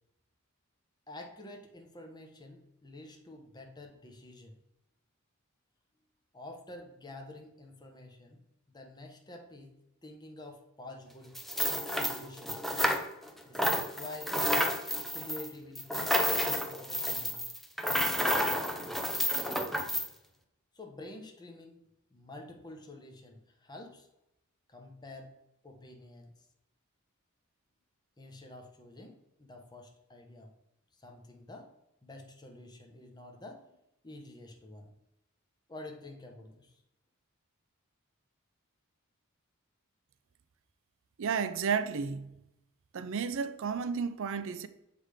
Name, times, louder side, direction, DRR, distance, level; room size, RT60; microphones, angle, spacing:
voice 1, 1.1-4.5 6.3-8.4 8.7-9.7 10.0-11.4 11.8-12.6 13.4-14.4 15.1-17.5 18.3-18.9 20.7-21.8 22.1-24.1 24.7-25.3 25.6-26.3 28.2-30.5 31.0-31.7 32.0-33.7 34.0-34.9 35.7-36.7, left 2 dB, 20° left, 0.9 m, -48 dB
sound 1, 11.4-13.3 13.5-20.1, equal, ahead, 0.5 m, -30 dB
voice 2, 41.2-42.4 42.9-44.7, right 6 dB, 65° right, 0.4 m, -32 dB
7.3 x 3.4 x 4.9 m
head